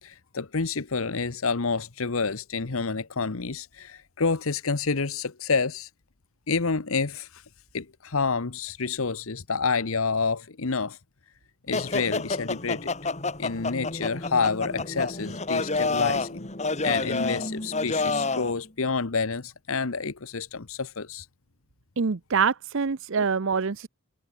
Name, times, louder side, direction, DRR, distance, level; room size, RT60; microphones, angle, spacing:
voice 1, 0.0-5.9 6.5-7.4 7.7-11.0 11.7-12.9 13.4-16.5 16.8-21.3 23.2-23.3, left 4 dB, 65° left, 1.0 m, -28 dB
sound 1, 11.7-18.5, left 3 dB, 30° left, 3.4 m, -29 dB
voice 2, 22.0-23.9, right 5 dB, 60° right, 0.7 m, -25 dB
head